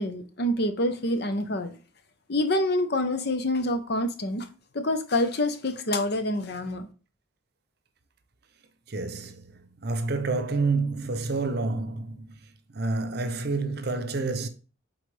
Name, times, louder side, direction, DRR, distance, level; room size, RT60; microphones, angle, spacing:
voice 1, 0.0-1.8 2.3-4.5 4.7-6.9, left 1 dB, 55° left, 0.8 m, -27 dB
voice 2, 8.9-12.4 12.7-14.5, right 3 dB, 55° right, 0.7 m, -29 dB
7.9 x 4.0 x 3.3 m
head